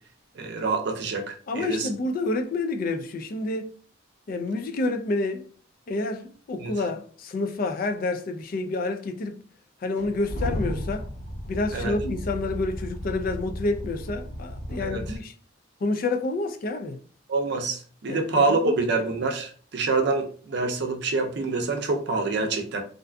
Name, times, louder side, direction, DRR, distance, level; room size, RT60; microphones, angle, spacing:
voice 1, 0.4-1.9 6.6-6.7 11.7-11.9 14.8-15.0 17.3-22.8, right 3 dB, 60° right, 0.5 m, -26 dB
voice 2, 1.5-3.7 4.3-5.5 5.9-9.4 9.8-11.1 11.5-15.3 15.8-17.0 18.1-18.8, left 2 dB, 45° left, 0.3 m, -29 dB
sound 1, 10.0-15.2, equal, 65° left, 1.0 m, -34 dB
2.5 x 2.4 x 2.2 m
head